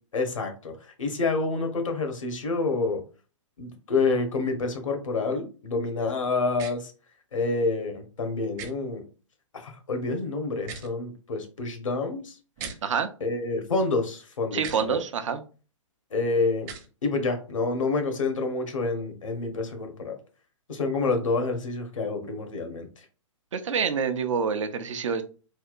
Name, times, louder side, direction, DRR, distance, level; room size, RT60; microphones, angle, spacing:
voice 1, 0.1-3.0 3.6-6.9 7.3-9.0 9.6-12.3 13.2-14.6 14.9-15.0 16.1-16.7 17.0-20.2 20.7-22.9, left 3 dB, 75° left, 5 dB, 1.0 m, -28 dB
sound 1, 6.5-6.7 8.6-8.7 10.6-10.9 12.6-12.8 14.6-14.8 16.6-16.9, right 6 dB, 35° right, 0.8 m, -38 dB
voice 2, 14.5-15.4 23.5-25.2, right 6 dB, 70° right, 9 dB, 0.6 m, -27 dB
3.4 x 2.8 x 2.4 m, 0.35 s
figure-of-eight pair, 120°, 17 cm